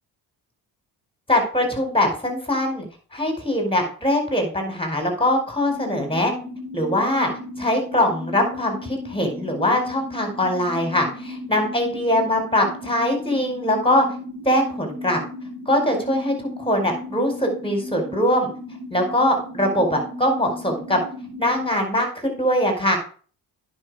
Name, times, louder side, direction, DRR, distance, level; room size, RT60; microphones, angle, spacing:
voice 1, 1.3-2.9 3.1-6.3 6.7-7.3 7.6-14.1 14.4-15.2 15.6-18.5 18.9-21.0 21.4-23.0, left 1 dB, 10° left, 4 dB, 4.8 m, -22 dB
sound 1, 5.7-21.7, left 1 dB, 65° right, 3.5 m, -35 dB
9.8 x 6.3 x 4.9 m, 0.41 s
hypercardioid pair, 50°, 45 cm